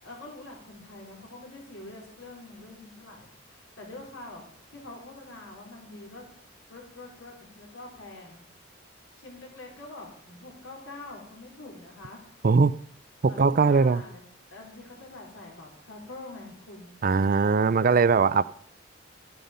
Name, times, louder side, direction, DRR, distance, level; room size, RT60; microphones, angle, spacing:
voice 1, 0.0-3.3 3.7-4.4 4.7-6.3 6.7-8.4 9.2-12.2 13.2-14.2 14.5-16.9 17.4-18.0, left 2 dB, 80° left, -1 dB, 4.3 m, -45 dB
voice 2, 12.4-12.7 13.2-14.0 17.0-18.4, right 4 dB, 45° right, 18 dB, 0.4 m, -20 dB
13.0 x 9.6 x 5.2 m, 0.62 s
head